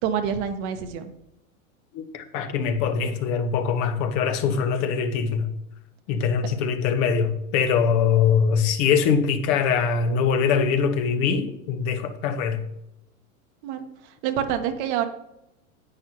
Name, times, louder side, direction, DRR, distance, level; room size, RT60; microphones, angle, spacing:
voice 1, 0.0-1.1 13.6-15.0, right 9 dB, 55° right, 1.3 m, -27 dB
voice 2, 1.9-5.5 6.1-12.6, left 6 dB, 50° left, 1.3 m, -23 dB
10.5 x 8.7 x 3.0 m
hypercardioid pair, 100°, 41 cm